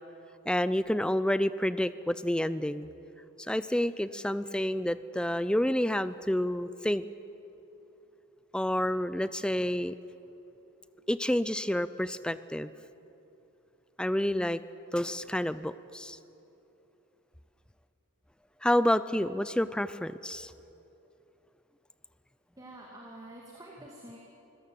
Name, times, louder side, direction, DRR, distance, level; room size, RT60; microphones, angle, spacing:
voice 1, 0.5-2.9 3.4-7.0 8.5-10.0 11.1-12.7 14.0-14.6 14.9-16.2 18.6-20.5, left 1 dB, 5° left, 15 dB, 0.4 m, -29 dB
voice 2, 22.6-24.2, right 1 dB, 20° right, -1 dB, 2.1 m, -47 dB
25.0 x 16.5 x 7.7 m, 3.0 s
head